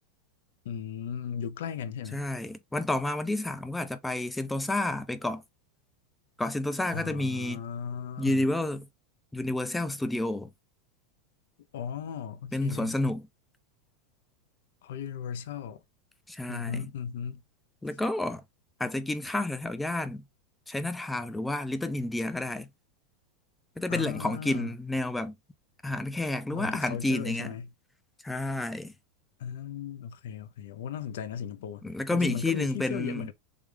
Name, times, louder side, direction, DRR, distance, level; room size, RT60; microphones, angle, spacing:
voice 1, 0.6-2.3 6.9-8.5 11.7-13.0 14.8-15.8 16.5-17.4 23.9-24.7 26.5-27.7 29.4-33.3, left 8 dB, 75° left, 0.5 m, -36 dB
voice 2, 2.1-5.4 6.4-7.6 8.2-8.9 9.3-10.5 12.5-13.3 16.3-16.9 17.8-18.4 18.8-20.2 20.7-22.7 23.8-25.3 25.8-27.5 28.2-28.9 31.8-33.3, left 2 dB, 5° left, 0.4 m, -30 dB
3.3 x 2.3 x 3.3 m
supercardioid pair, 145°, 0 cm